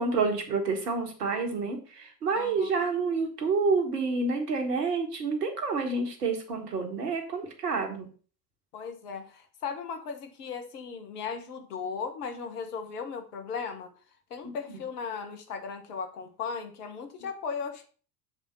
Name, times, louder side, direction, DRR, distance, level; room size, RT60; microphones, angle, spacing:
voice 1, 0.0-8.1 14.7-14.8, right 4 dB, 75° right, 4 dB, 1.6 m, -28 dB
voice 2, 2.3-2.7 8.7-13.9 14.3-17.9, left 5 dB, 70° left, 6 dB, 1.3 m, -37 dB
7.2 x 3.6 x 5.4 m, 0.39 s
figure-of-eight pair, 65°, 47 cm